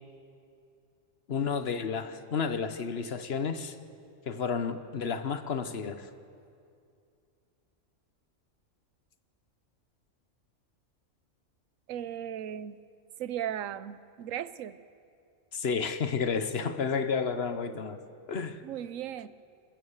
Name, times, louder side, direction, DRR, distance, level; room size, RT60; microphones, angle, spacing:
voice 1, 1.3-3.7 4.3-6.1 15.5-18.0 18.3-18.6, left 5 dB, 55° left, 11 dB, 1.2 m, -31 dB
voice 2, 11.9-12.8 13.2-14.8 18.6-19.3, right 10 dB, 90° right, 16 dB, 1.1 m, -36 dB
29.0 x 14.5 x 7.2 m, 2.5 s
omnidirectional pair, 1.3 m